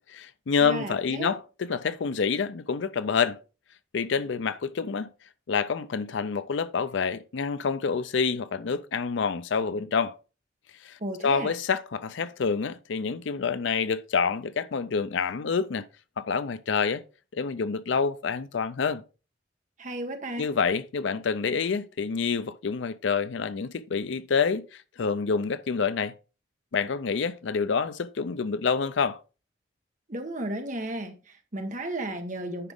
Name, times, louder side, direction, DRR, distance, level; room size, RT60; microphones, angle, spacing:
voice 1, 0.1-3.4 3.9-5.1 5.5-10.1 10.8-11.0 11.2-15.9 16.2-17.0 17.3-19.0 20.4-24.7 25.0-26.1 26.7-29.2, left 5 dB, 70° left, 0.5 m, -27 dB
voice 2, 0.6-1.3 11.0-11.5 19.8-20.5 30.1-32.7, right 1 dB, 40° right, 1.2 m, -34 dB
9.9 x 5.0 x 3.5 m
head